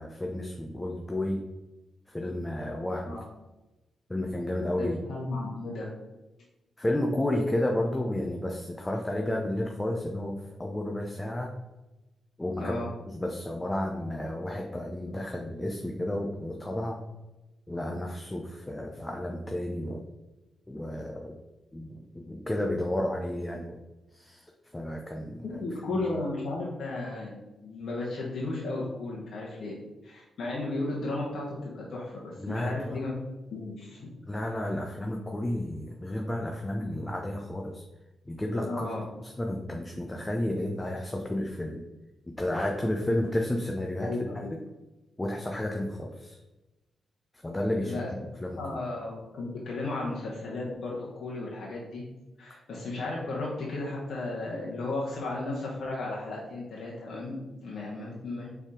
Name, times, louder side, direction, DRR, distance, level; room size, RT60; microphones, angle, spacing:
voice 1, 0.0-1.4 2.1-3.2 4.1-5.0 6.8-11.5 12.4-12.8 13.1-17.0 17.7-20.0 20.7-21.4 21.7-23.8 24.1-24.5 24.7-25.6 25.9-26.1 32.4-33.0 34.3-37.8 38.3-38.9 39.2-41.8 42.4-44.1 45.2-46.4 47.4-48.8, left 1 dB, 20° left, 1 dB, 0.6 m, -32 dB
voice 2, 4.8-5.9 12.6-12.9 25.4-27.3 27.6-29.7 30.0-33.1 33.5-34.1 38.6-39.0 44.0-44.5 47.8-48.1 48.6-52.0 52.4-58.5, left 2 dB, 70° left, -4 dB, 0.9 m, -34 dB
4.0 x 3.5 x 3.7 m, 1.1 s
supercardioid pair, 50°, 0 cm